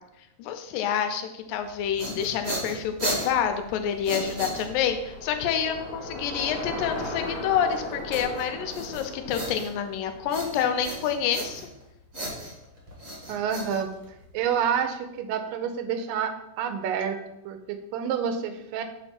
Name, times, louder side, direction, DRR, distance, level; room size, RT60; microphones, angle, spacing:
voice 1, 0.4-11.6, left 8 dB, 90° left, 7 dB, 2.3 m, -28 dB
sound 1, 1.7-5.1 8.1-9.9 10.3-11.8 12.1-14.4, equal, 55° right, 0.9 m, -35 dB
Bicycle, 2.8-11.0, left 1 dB, 5° left, 1.2 m, -39 dB
voice 2, 13.3-13.9 14.3-17.2 17.5-18.8, right 7 dB, 85° right, 8 dB, 2.3 m, -28 dB
7.1 x 3.4 x 5.7 m, 0.87 s
omnidirectional pair, 4.0 m